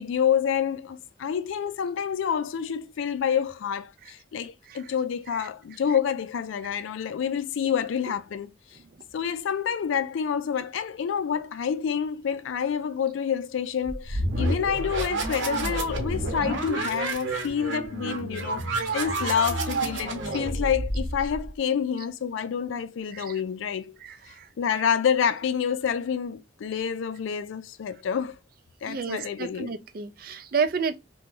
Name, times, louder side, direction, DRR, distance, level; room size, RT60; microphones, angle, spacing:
voice 1, 0.0-8.5 9.1-18.7 18.9-23.9 24.6-28.4 28.8-29.7, left 7 dB, 75° left, 0.3 m, -28 dB
sound 1, 13.8-21.5, right 2 dB, 65° right, 0.9 m, -29 dB
voice 2, 28.9-31.0, right 5 dB, 45° right, 0.4 m, -29 dB
2.9 x 2.2 x 3.6 m
head